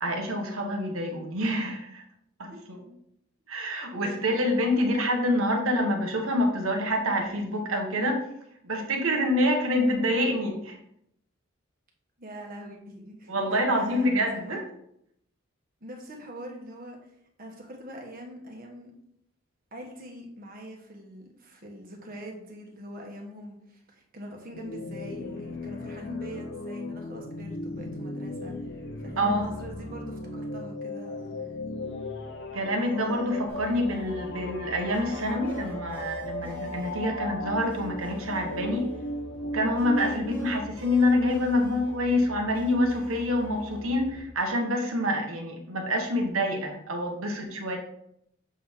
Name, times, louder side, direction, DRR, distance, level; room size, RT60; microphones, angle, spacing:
voice 1, 0.0-2.0 2.4-2.8 3.5-8.3 8.6-10.8 13.3-14.6 29.2-29.4 32.5-38.9 39.4-47.8, left 1 dB, 85° right, 2 dB, 1.4 m, -26 dB
voice 2, 4.0-4.4 12.2-14.5 15.8-17.1 17.4-18.9 19.7-31.5, equal, 45° right, 1 dB, 1.4 m, -43 dB
sound 1, 24.5-40.7, left 1 dB, 55° left, 0.7 m, -37 dB
sound 2, 33.5-44.2, left 1 dB, 10° left, 1.3 m, -43 dB
7.2 x 3.8 x 4.6 m, 0.75 s
head